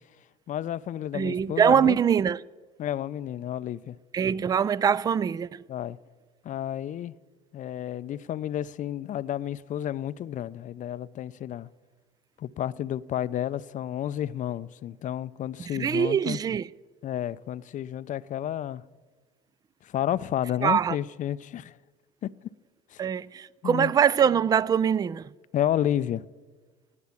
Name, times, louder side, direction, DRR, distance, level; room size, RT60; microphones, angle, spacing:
voice 1, 0.5-2.0 2.8-4.0 5.7-6.0 6.4-7.1 7.5-11.7 12.4-16.4 17.0-18.8 19.8-21.8 22.2-22.3 22.9-23.0 23.6-23.9 25.5-26.3, left 11 dB, 40° left, 0.5 m, -31 dB
voice 2, 1.1-2.4 4.1-5.6 15.6-16.7 20.6-21.0 23.0-25.3, right 8 dB, 20° right, 0.3 m, -23 dB
19.5 x 8.3 x 7.1 m
hypercardioid pair, 75°, 19 cm